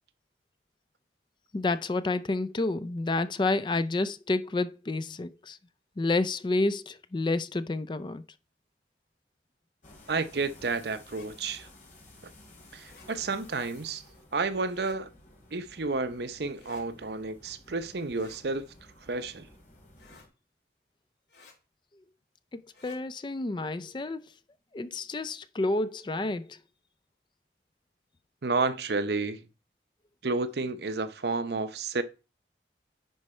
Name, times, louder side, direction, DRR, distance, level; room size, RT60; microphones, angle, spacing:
voice 1, 1.5-5.6 6.0-8.2 22.5-24.2 24.7-26.6, left 2 dB, 25° left, 0.4 m, -29 dB
sound 1, 9.8-20.3, left 1 dB, 45° left, 2.9 m, -54 dB
voice 2, 10.1-11.7 12.2-12.3 12.7-14.0 14.3-15.1 15.5-18.7 19.0-19.5 28.4-29.5 30.2-32.0, right 3 dB, 70° right, 0.7 m, -31 dB
sound 2, 11.1-11.3 12.8-13.1 14.7-15.0 16.6-16.8 18.1-18.4 20.0-20.3 21.3-21.6 22.7-23.0, left 4 dB, 75° left, 2.4 m, -55 dB
10.0 x 4.6 x 4.3 m
head